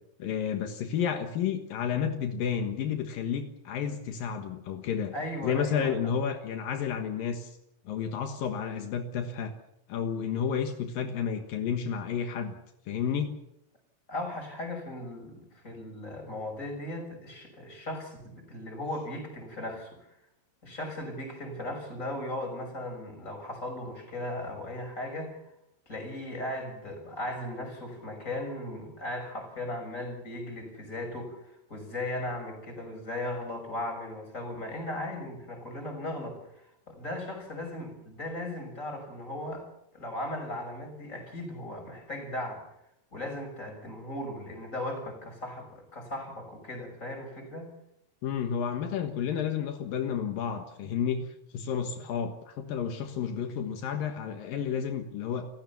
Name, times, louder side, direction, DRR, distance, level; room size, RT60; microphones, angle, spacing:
voice 1, 0.2-5.1 5.4-7.6 7.9-9.5 9.9-12.5 12.9-13.4 48.2-55.5, left 7 dB, 75° left, 6 dB, 3.1 m, -31 dB
voice 2, 5.1-5.9 14.1-20.2 20.6-25.4 25.9-39.7 39.9-42.6 43.1-47.7, left 1 dB, 20° left, 3 dB, 6.4 m, -37 dB
29.0 x 15.5 x 7.1 m, 0.80 s
omnidirectional pair, 4.1 m